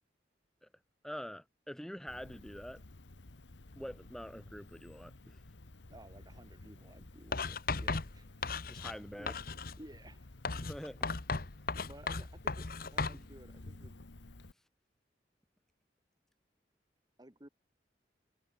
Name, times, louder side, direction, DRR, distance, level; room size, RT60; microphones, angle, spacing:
voice 1, 1.0-2.8 3.8-5.4 8.7-9.3 10.6-11.2 13.1-13.2, equal, 5° left, 1.8 m, -45 dB
Cricket, 2.1-14.5, left 2 dB, 85° left, 1.4 m, -54 dB
voice 2, 5.9-8.5 9.2-9.4 9.8-10.3 11.8-14.0 17.2-17.5, right 1 dB, 20° right, 2.2 m, -55 dB
Writing, 7.3-9.0 9.3-9.8 10.4-13.2, left 4 dB, 55° left, 1.3 m, -36 dB
head